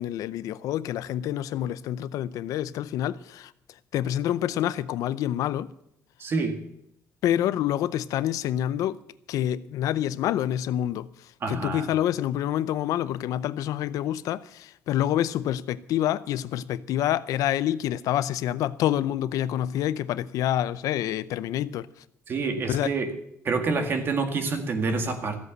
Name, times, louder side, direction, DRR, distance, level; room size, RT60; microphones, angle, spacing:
voice 1, 0.0-3.5 3.9-5.7 7.2-9.0 9.3-21.9 22.7-22.9, left 12 dB, 85° left, 0.6 m, -27 dB
voice 2, 6.2-6.6 11.4-11.9 22.3-23.1 23.4-25.4, right 4 dB, 40° right, 2.0 m, -27 dB
15.0 x 8.1 x 8.0 m
cardioid pair, 155°, 6 cm